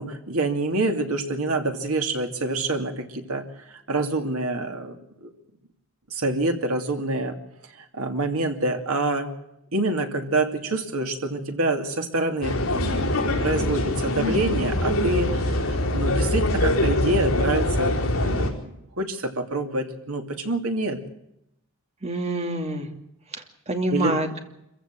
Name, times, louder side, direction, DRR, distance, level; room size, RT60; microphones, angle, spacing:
voice 1, 0.0-5.3 6.1-7.4 7.8-9.3 9.7-13.1 13.4-21.0 23.9-24.2, right 2 dB, 75° right, 4 dB, 2.7 m, -27 dB
sound 1, 12.4-18.5, left 1 dB, 65° left, 4.7 m, -23 dB
voice 2, 22.0-22.9 23.3-24.4, right 1 dB, 30° right, 4 dB, 2.5 m, -27 dB
26.0 x 15.5 x 7.6 m, 0.84 s
head